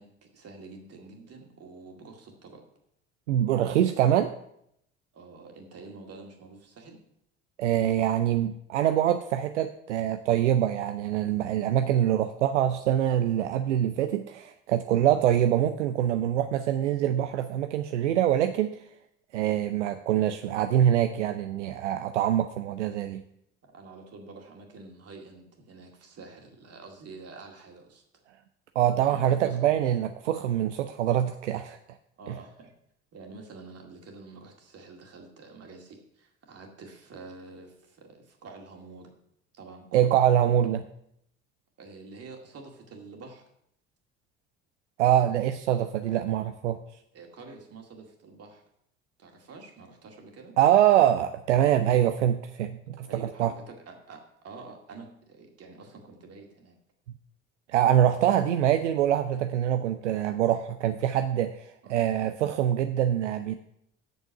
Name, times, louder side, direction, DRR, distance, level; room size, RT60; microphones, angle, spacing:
voice 1, 0.0-2.6 5.1-7.0 22.8-22.9 23.6-28.0 29.1-29.7 32.2-32.7 33.1-39.1 39.5-40.3 41.8-43.4 47.1-48.6 49.2-50.5 53.0-54.2 54.4-56.8 61.8-62.0, right 3 dB, 45° right, 2 dB, 2.2 m, -47 dB
voice 2, 3.3-4.3 7.6-18.8 19.3-23.2 28.8-31.8 32.3-32.4 39.9-40.8 45.0-46.8 50.6-53.5 57.7-63.6, right 11 dB, 80° right, 9 dB, 0.5 m, -24 dB
8.2 x 6.9 x 5.8 m, 0.74 s
figure-of-eight pair, 55°, 36 cm